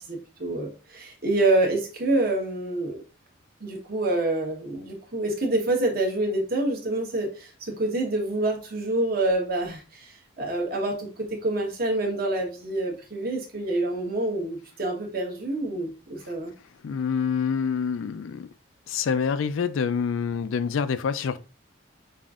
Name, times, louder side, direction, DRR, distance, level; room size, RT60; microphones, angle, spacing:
voice 1, 0.0-3.0 3.6-16.5, right 2 dB, 45° right, 1.1 m, -27 dB
voice 2, 16.8-18.5 18.9-21.4, left 6 dB, 80° left, 0.4 m, -26 dB
5.4 x 2.5 x 2.4 m
head